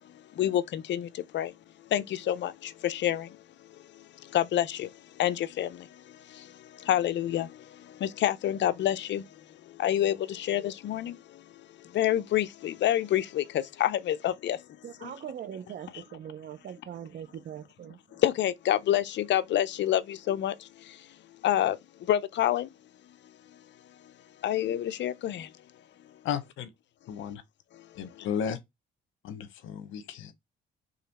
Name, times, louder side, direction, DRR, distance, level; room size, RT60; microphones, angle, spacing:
voice 1, 0.0-1.5 1.9-11.4 11.8-14.7 15.0-15.1 18.1-21.1 21.4-22.7 23.5-23.6 24.4-25.5 27.7-28.3, left 11 dB, 65° left, 0.6 m, -29 dB
voice 2, 14.8-18.0, right 9 dB, 55° right, 0.6 m, -41 dB
voice 3, 26.2-26.7 27.1-27.4 28.0-28.6 29.2-30.3, left 8 dB, 85° left, 0.9 m, -34 dB
4.0 x 3.2 x 4.1 m
cardioid pair, 90°, 20 cm